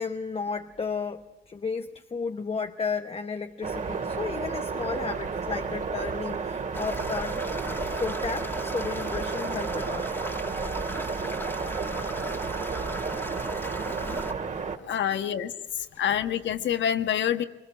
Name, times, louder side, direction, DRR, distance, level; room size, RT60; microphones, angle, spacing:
voice 1, 0.0-7.4 7.9-10.1 12.0-12.4 13.8-14.3 14.9-15.0, left 5 dB, 30° left, 1.0 m, -33 dB
sound 1, 3.6-14.8, right 5 dB, 40° right, 2.4 m, -32 dB
sound 2, 6.7-14.3, left 1 dB, 10° left, 2.0 m, -38 dB
voice 2, 14.9-17.4, left 9 dB, 65° left, 1.4 m, -27 dB
24.5 x 22.5 x 7.5 m
cardioid pair, 90°, 20 cm